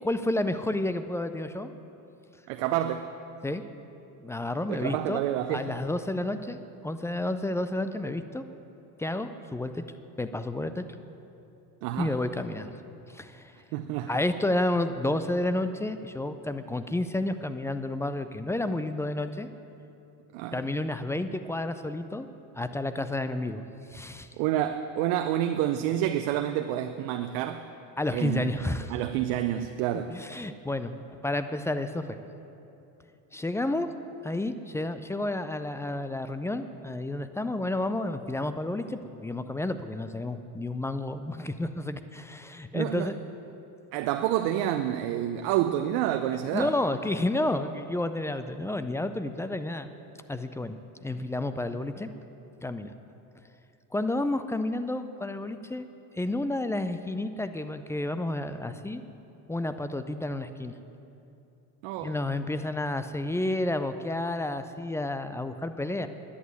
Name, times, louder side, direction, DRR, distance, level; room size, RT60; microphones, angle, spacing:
voice 1, 0.0-1.7 3.4-3.6 4.2-5.2 5.5-6.6 6.8-8.6 9.0-9.8 10.2-10.9 12.0-12.8 13.1-13.5 14.1-19.5 20.5-22.3 22.6-23.6 23.9-24.3 28.0-28.9 30.1-32.2 33.3-33.9 34.2-43.1 46.5-49.9 50.3-52.1 52.6-52.9 53.9-55.8 56.2-59.0 59.5-60.8 62.0-66.1, left 1 dB, 5° left, 10 dB, 0.4 m, -30 dB
voice 2, 2.5-3.1 4.7-5.8 11.8-12.2 13.7-14.1 20.3-20.6 24.4-27.6 28.1-30.2 42.7-43.1 43.9-46.7 61.8-62.2, right 12 dB, 65° right, 8 dB, 0.7 m, -28 dB
11.0 x 8.7 x 9.3 m, 2.8 s
hypercardioid pair, 80°, 49 cm